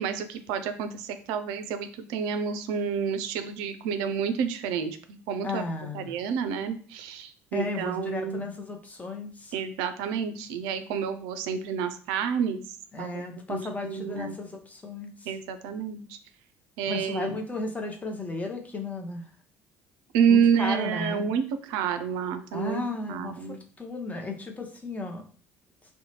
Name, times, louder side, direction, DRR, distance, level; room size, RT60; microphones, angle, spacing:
voice 1, 0.0-5.6 5.9-8.4 9.5-12.6 13.0-14.4 15.3-16.2 16.8-17.3 20.1-22.8 23.1-23.6, right 7 dB, 70° right, 9 dB, 0.4 m, -29 dB
voice 2, 5.4-6.1 7.5-9.5 12.9-15.3 16.9-19.3 20.3-21.3 22.5-25.2, left 3 dB, 20° left, 2 dB, 0.7 m, -34 dB
2.7 x 2.1 x 2.9 m, 0.43 s
hypercardioid pair, 55°, 8 cm